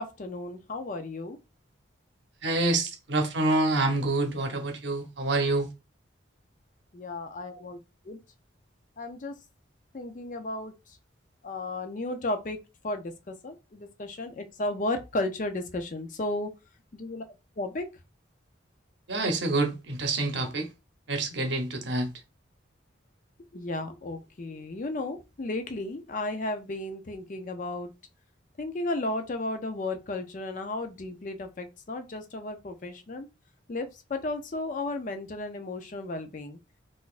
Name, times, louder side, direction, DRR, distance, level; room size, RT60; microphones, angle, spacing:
voice 1, 0.0-1.4 6.9-7.8 8.1-8.2 9.0-9.4 9.9-10.7 11.4-12.6 12.8-16.5 16.9-17.2 17.6-17.9 23.5-27.9 28.6-33.3 33.7-36.6, left 2 dB, 40° left, 0.4 m, -34 dB
voice 2, 2.4-5.7 19.1-20.7 21.1-22.1, right 2 dB, 65° right, 0.8 m, -27 dB
3.9 x 2.5 x 2.4 m
head